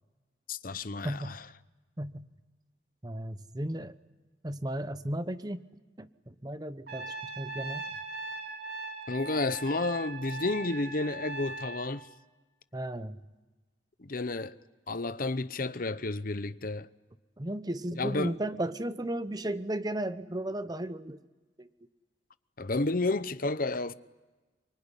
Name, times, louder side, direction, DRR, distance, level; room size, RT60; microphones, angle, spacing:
voice 1, 0.5-1.4 9.1-12.1 14.0-14.6 14.9-16.9 18.0-18.3 22.6-23.9, left 2 dB, 50° left, 0.8 m, -31 dB
voice 2, 1.0-1.4 2.0-2.3 3.0-3.9 4.4-5.6 6.0-7.9 12.7-13.3 17.4-21.2 21.6-21.7, right 1 dB, 20° right, 0.9 m, -35 dB
Trumpet, 6.9-11.9, right 3 dB, 55° right, 3.0 m, -40 dB
24.5 x 24.0 x 10.0 m
head